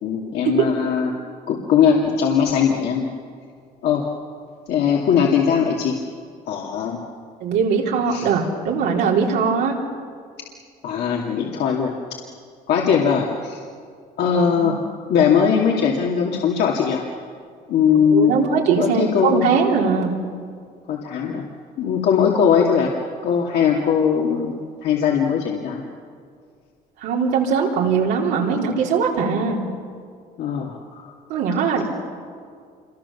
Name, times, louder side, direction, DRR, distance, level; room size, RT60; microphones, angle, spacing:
voice 1, 0.0-1.1 1.5-3.1 3.8-4.0 4.7-6.0 6.5-7.0 8.1-8.3 10.8-11.9 12.7-13.6 14.2-14.8 15.1-17.0 17.7-18.3 18.8-19.5 20.9-21.4 21.8-22.9 23.2-24.5 24.8-25.8 30.4-31.1, left 7 dB, 75° left, -2 dB, 2.6 m, -20 dB
voice 2, 7.4-9.8 14.4-14.8 18.1-20.1 27.0-29.6 31.3-31.8, right 5 dB, 90° right, -2 dB, 4.3 m, -20 dB
27.5 x 24.0 x 7.1 m, 2.1 s
cardioid pair, 110°, 17 cm